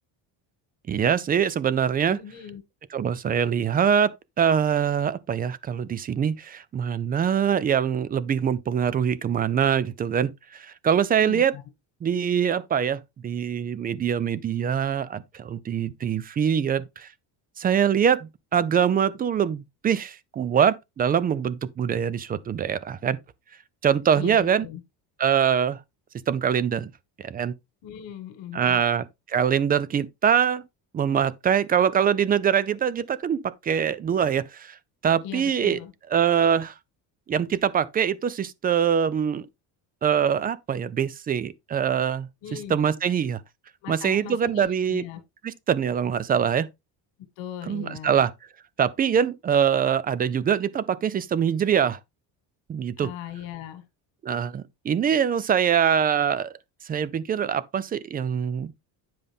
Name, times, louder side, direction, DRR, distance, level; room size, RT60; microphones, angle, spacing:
voice 1, 0.9-2.2 2.9-4.1 4.4-11.5 12.0-17.1 17.6-23.2 23.8-24.7 25.2-25.8 26.3-26.9 27.2-27.5 28.5-30.6 30.9-34.8 35.0-35.8 36.1-36.7 37.3-39.5 40.0-43.4 43.9-45.1 45.4-46.7 47.7-48.3 48.8-52.0 52.7-53.1 54.2-56.5 56.9-58.7, right 8 dB, 20° right, 0.4 m, -24 dB
voice 2, 2.1-2.6 11.1-11.6 24.1-24.8 27.8-28.8 35.2-35.9 42.4-42.8 43.8-45.2 47.4-48.2 53.0-53.8, left 10 dB, 85° left, 2.0 m, -39 dB
10.0 x 5.3 x 3.5 m
cardioid pair, 170°, 43 cm